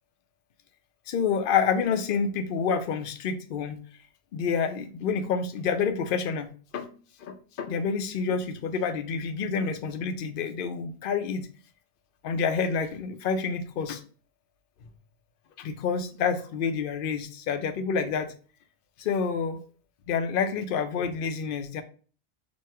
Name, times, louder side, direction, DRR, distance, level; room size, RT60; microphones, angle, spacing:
voice 1, 1.1-3.8 4.3-6.9 7.2-11.5 12.2-14.0 15.6-18.3 19.0-19.6 20.1-21.8, left 6 dB, 60° left, 8 dB, 0.7 m, -28 dB
3.1 x 2.7 x 4.3 m, 0.40 s
omnidirectional pair, 1.1 m